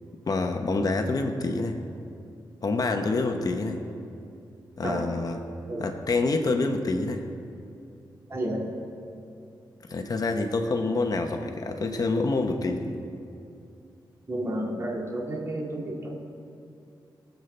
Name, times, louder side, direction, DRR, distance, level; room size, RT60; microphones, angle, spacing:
voice 1, 0.3-1.8 2.6-3.8 4.8-5.4 5.8-7.2 9.9-12.9, left 3 dB, 50° left, 5 dB, 1.0 m, -27 dB
voice 2, 8.3-8.7 14.3-16.2, right 1 dB, 30° right, -2 dB, 2.2 m, -31 dB
22.5 x 8.2 x 3.4 m, 2.6 s
wide cardioid pair, 105°, 8 cm